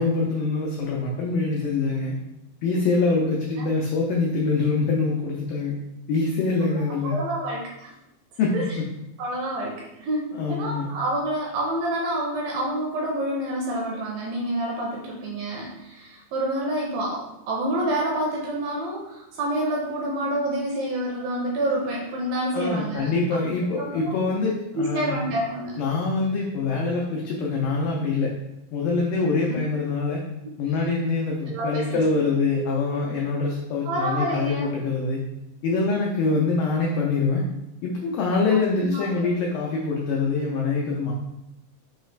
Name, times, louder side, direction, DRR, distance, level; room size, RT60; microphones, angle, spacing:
voice 1, 0.0-2.2 2.6-5.7 6.1-7.2 8.4-8.8 10.3-10.9 22.5-25.2 25.8-28.3 28.7-30.2 30.6-35.2 35.6-37.4 37.8-41.1, left 3 dB, 90° left, -2 dB, 1.9 m, -24 dB
voice 2, 6.7-7.9 8.5-8.6 9.2-23.1 23.8-24.2 24.8-25.8 31.5-32.0 33.9-34.7 36.9-37.0 38.8-39.3, right 1 dB, 80° right, -2 dB, 2.1 m, -28 dB
6.2 x 2.4 x 3.2 m, 0.89 s
omnidirectional pair, 4.6 m